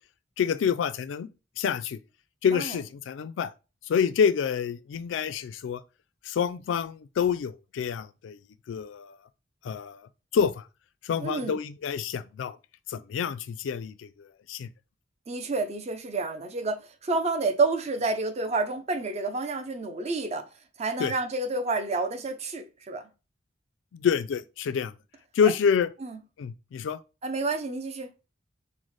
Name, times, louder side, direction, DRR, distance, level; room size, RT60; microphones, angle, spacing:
voice 1, 0.4-1.3 1.6-2.0 2.4-3.5 3.9-5.8 6.2-8.4 8.7-9.2 9.6-10.0 10.3-10.7 11.0-12.6 12.9-14.7 21.0-21.1 23.9-24.9 25.3-25.9 26.4-27.0, left 7 dB, 90° left, 0.3 m, -27 dB
voice 2, 11.2-11.6 15.3-20.5 20.8-23.1 25.4-25.5 26.0-26.2 27.2-28.1, right 3 dB, 35° right, 0.4 m, -29 dB
3.8 x 2.1 x 3.1 m
head